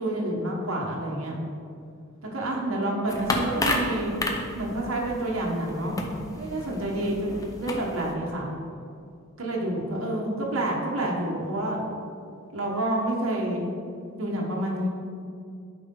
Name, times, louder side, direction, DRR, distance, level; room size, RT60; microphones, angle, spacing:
voice 1, 0.0-1.4 2.2-4.1 4.5-6.0 6.4-8.5 9.4-11.9 12.5-13.7 14.2-14.9, right 1 dB, 85° right, -2 dB, 1.3 m, -28 dB
sound 1, 3.1-8.1, left 1 dB, 15° left, 0.6 m, -32 dB
9.2 x 4.9 x 3.8 m, 2.4 s
head